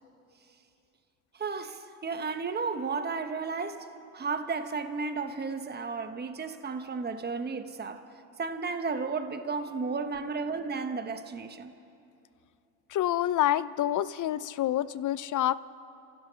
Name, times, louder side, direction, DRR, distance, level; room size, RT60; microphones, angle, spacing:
voice 1, 1.3-8.1 8.4-11.7, right 4 dB, 25° right, 1.3 m, -33 dB
voice 2, 12.9-15.5, left 12 dB, 50° left, 0.7 m, -27 dB
27.5 x 15.5 x 6.4 m
supercardioid pair, 80°, 40 cm